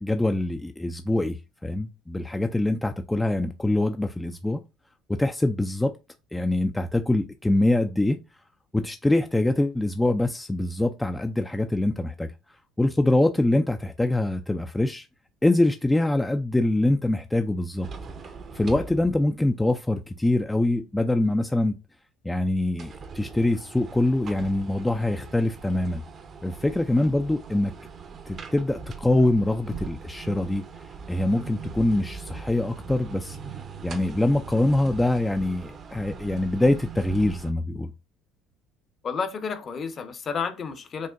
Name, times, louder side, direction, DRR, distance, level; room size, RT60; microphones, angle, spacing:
voice 1, 0.0-1.4 1.6-4.6 5.1-5.9 6.3-8.2 8.7-12.3 12.8-15.1 15.4-17.9 18.5-21.8 22.2-26.0 26.4-27.7 28.3-30.6 31.1-33.4 33.8-37.9, left 1 dB, 10° left, 0.4 m, -24 dB
sound 1, 17.8-19.6 20.0-20.1 22.7-37.5, right 5 dB, 45° right, 0.7 m, -41 dB
voice 2, 39.0-41.1, left 6 dB, 40° left, 0.8 m, -31 dB
6.1 x 2.1 x 2.5 m
supercardioid pair, 80°, 0 cm